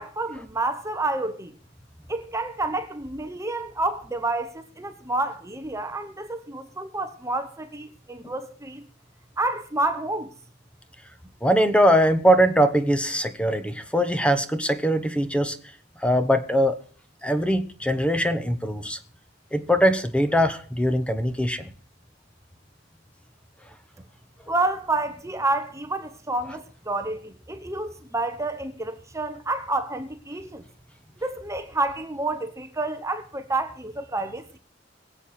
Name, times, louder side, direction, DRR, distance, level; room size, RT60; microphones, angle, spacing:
voice 1, 0.0-1.5 2.1-8.9 9.4-10.3 24.5-30.6 31.2-34.5, right 2 dB, 15° right, 1.0 m, -29 dB
voice 2, 11.4-15.6 16.0-16.8 17.2-19.0 19.5-21.6, equal, 5° left, 1.2 m, -21 dB
23.0 x 8.0 x 4.3 m
head